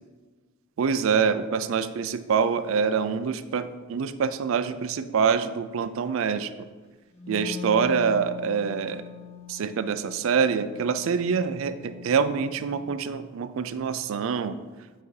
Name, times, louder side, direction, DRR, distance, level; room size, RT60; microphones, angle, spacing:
voice 1, 0.8-6.5 7.3-9.0 9.5-14.6, right 6 dB, 70° right, 12 dB, 0.3 m, -25 dB
Wind instrument woodwind instrument, 7.1-12.8, left 5 dB, 30° left, 0.6 m, -41 dB
7.9 x 2.7 x 4.7 m, 1.3 s
head